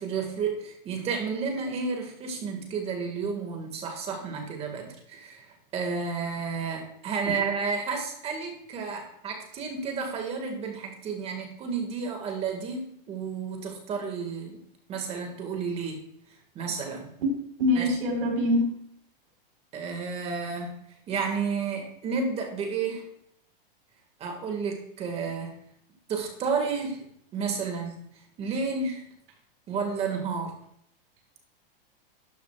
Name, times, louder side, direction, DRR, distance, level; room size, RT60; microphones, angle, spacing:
voice 1, 0.0-5.5 5.7-14.6 14.9-16.0 16.6-17.1 17.8-17.9 19.7-20.7 21.1-23.1 24.2-25.6 26.1-27.0 27.3-28.0 28.4-29.0 29.7-30.5, right 5 dB, 20° right, 3 dB, 1.8 m, -31 dB
voice 2, 17.2-18.7, left 1 dB, 75° right, 1 dB, 4.2 m, -25 dB
12.5 x 9.2 x 2.4 m, 0.71 s
supercardioid pair, 160°, 29 cm